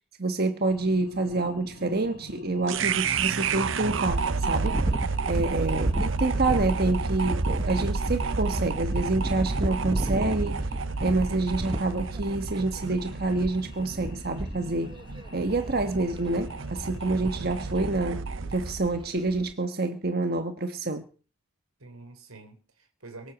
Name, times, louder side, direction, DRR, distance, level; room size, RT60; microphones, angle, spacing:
voice 1, 0.2-4.8 5.3-10.6 11.0-14.9 15.3-18.2 18.5-21.0, right 2 dB, 45° right, 8 dB, 1.3 m, -27 dB
sound 1, 0.7-18.1, left 1 dB, 50° left, 2.0 m, -48 dB
sound 2, 2.7-18.9, right 4 dB, 65° right, 0.7 m, -31 dB
sound 3, 3.8-19.5, right 1 dB, 25° right, 0.9 m, -34 dB
voice 2, 21.8-23.3, right 3 dB, 85° right, 7 dB, 4.0 m, -47 dB
23.5 x 7.8 x 7.3 m, 0.40 s
head